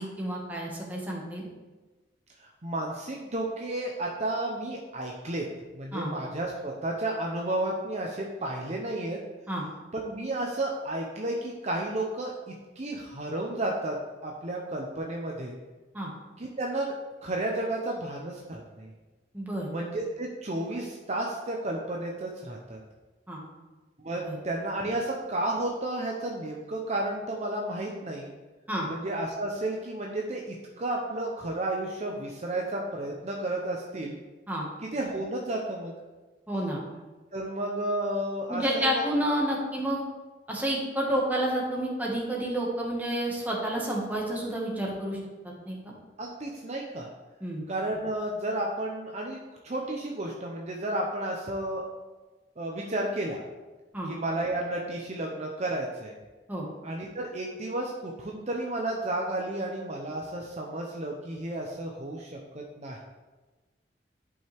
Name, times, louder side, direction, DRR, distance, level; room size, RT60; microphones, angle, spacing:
voice 1, 0.0-1.5 5.9-6.1 9.5-9.6 15.9-16.1 19.3-19.7 23.3-23.4 24.2-24.4 28.7-28.9 34.5-34.7 36.5-36.8 38.5-40.0 40.5-45.2 45.4-45.9 47.4-47.6 53.9-54.1 56.5-56.6, right 1 dB, 10° right, -3 dB, 1.7 m, -30 dB
voice 2, 2.4-5.5 5.7-9.2 9.9-14.0 14.2-15.5 16.4-16.9 17.2-18.9 19.7-22.8 24.0-28.3 28.9-34.2 34.9-35.9 37.3-39.0 46.2-47.1 47.7-49.4 49.6-51.8 52.6-53.4 54.1-56.1 56.8-62.4 62.8-63.0, right 1 dB, 40° right, 0 dB, 0.8 m, -32 dB
11.0 x 5.6 x 3.5 m, 1.2 s
head